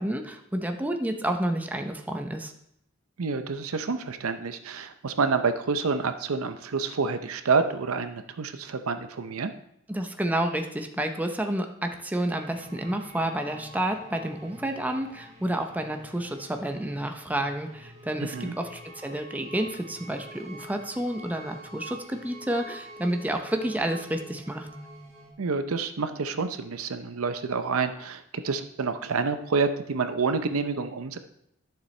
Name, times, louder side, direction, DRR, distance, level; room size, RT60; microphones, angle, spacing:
voice 1, 0.0-2.5 9.9-24.7, right 1 dB, 10° right, 5 dB, 0.6 m, -30 dB
voice 2, 3.2-9.5 18.2-18.5 25.4-31.2, right 4 dB, 70° right, 9 dB, 0.6 m, -28 dB
sound 1, 12.3-25.3, equal, 35° right, 1.6 m, -46 dB
12.0 x 6.9 x 3.2 m, 0.75 s
head